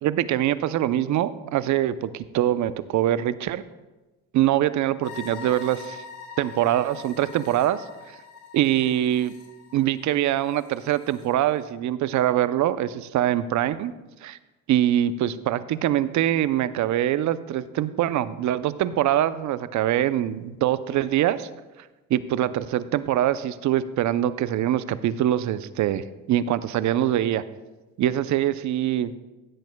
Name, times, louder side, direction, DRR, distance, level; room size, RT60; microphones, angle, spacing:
voice 1, 0.0-3.6 4.3-6.0 6.4-7.8 8.5-9.3 9.7-13.9 14.2-14.4 14.7-21.5 22.1-27.4 28.0-29.1, right 12 dB, 50° right, 14 dB, 0.6 m, -23 dB
sound 1, 5.0-11.3, left 6 dB, 55° left, 2.6 m, -44 dB
15.5 x 10.5 x 2.3 m, 1.1 s
supercardioid pair, 85°, 37 cm